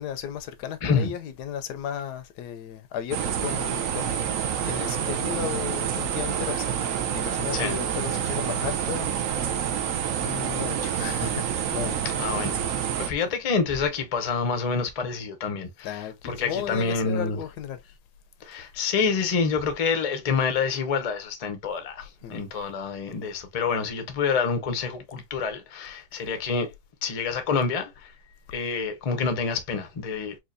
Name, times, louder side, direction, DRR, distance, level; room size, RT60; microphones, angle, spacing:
voice 1, 0.0-4.1 4.6-9.1 9.4-9.5 10.2-11.4 11.7-12.2 12.7-12.9 15.8-17.8 22.2-22.4 28.2-28.4, left 9 dB, 90° left, 1.2 m, -34 dB
sound 1, 3.1-13.1, right 9 dB, 65° right, 0.9 m, -28 dB
voice 2, 12.2-12.6 13.0-17.4 18.4-26.7 27.0-28.1 28.5-30.4, left 5 dB, 55° left, 0.4 m, -27 dB
4.4 x 2.5 x 2.5 m
omnidirectional pair, 1.7 m